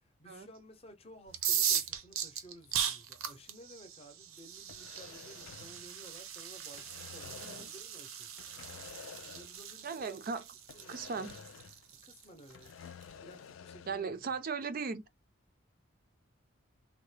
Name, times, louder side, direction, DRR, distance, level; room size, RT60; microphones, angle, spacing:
voice 1, 0.0-8.3 9.3-10.4 10.7-11.3 12.0-12.8 13.2-14.2, equal, 30° left, 0.7 m, -55 dB
sound 1, 1.3-13.0, right 9 dB, 85° right, 0.6 m, -38 dB
sound 2, 4.6-6.3 6.6-7.8 8.3-9.7 10.0-10.1 10.7-11.9 12.2-14.1, left 7 dB, 75° left, 0.3 m, -51 dB
voice 2, 9.8-10.4 10.9-11.4 13.9-15.0, right 5 dB, 45° right, 0.4 m, -37 dB
3.7 x 2.1 x 3.2 m
head